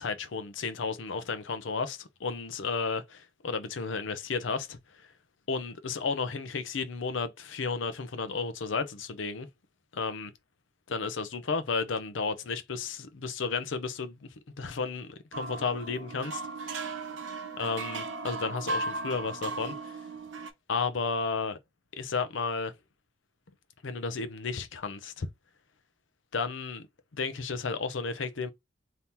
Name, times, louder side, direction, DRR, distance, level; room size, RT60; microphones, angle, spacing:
voice 1, 0.0-5.1 5.5-9.5 9.9-10.3 10.9-14.3 14.6-16.9 17.6-20.0 20.7-21.6 21.9-22.7 23.8-25.3 26.3-26.9 27.1-28.5, left 4 dB, 85° left, 0.6 m, -33 dB
sound 1, 15.3-20.5, right 3 dB, 80° right, 0.7 m, -36 dB
2.8 x 2.8 x 3.5 m
head